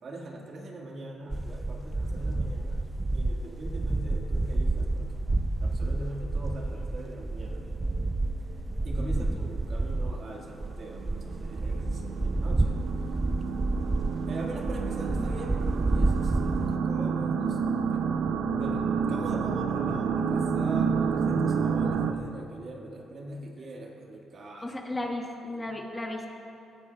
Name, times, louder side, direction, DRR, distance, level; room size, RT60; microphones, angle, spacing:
voice 1, 0.0-5.2 5.6-7.7 8.8-12.8 14.3-18.2 18.6-25.1 25.5-25.8, right 1 dB, 50° right, 0 dB, 1.7 m, -41 dB
sound 1, 1.3-10.2 10.6-16.8, right 2 dB, 20° right, 0.5 m, -29 dB
sound 2, 7.4-8.5 8.9-9.0 9.5-9.6 10.0-22.1, right 6 dB, 75° right, 0.6 m, -29 dB
voice 2, 9.0-9.4 15.2-15.4 24.6-26.3, left 1 dB, 15° left, 1 dB, 1.4 m, -35 dB
17.5 x 13.5 x 2.3 m, 2.8 s
cardioid pair, 90°, 0 cm